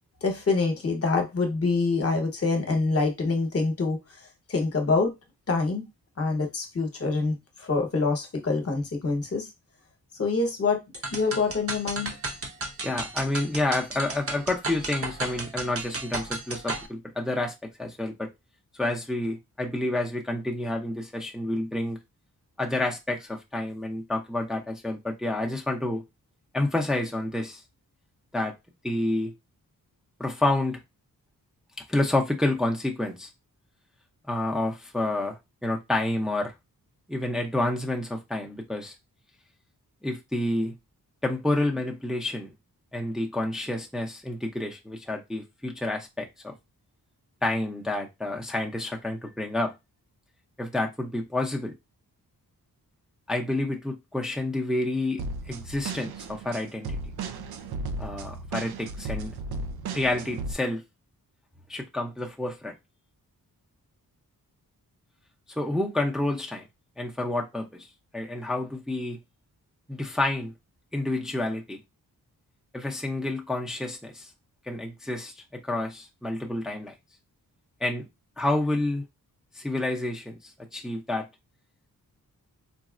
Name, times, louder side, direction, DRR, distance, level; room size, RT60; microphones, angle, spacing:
voice 1, 0.2-5.1 5.5-5.8 6.2-9.5 10.2-10.8 11.1-12.1, left 3 dB, 40° left, 0.9 m, -26 dB
sound 1, 10.9-16.9, right 2 dB, 40° right, 0.8 m, -34 dB
voice 2, 12.8-18.3 18.7-22.0 22.6-26.0 26.5-27.6 28.3-28.5 28.8-29.3 30.2-30.8 31.9-33.3 34.3-36.5 37.1-38.9 40.0-40.7 41.2-42.5 42.9-46.5 47.4-49.7 50.6-51.7 53.3-57.0 58.0-59.3 59.9-60.8 61.7-62.7 65.6-66.7 67.0-67.9 68.1-69.2 69.9-70.5 70.9-71.8 72.7-74.3 74.7-76.9 77.8-78.1 78.4-79.0 79.5-81.3, left 2 dB, ahead, 0.5 m, -29 dB
sound 2, 55.2-60.5, right 3 dB, 85° right, 0.5 m, -35 dB
4.0 x 2.0 x 2.4 m
wide cardioid pair, 95°, 36 cm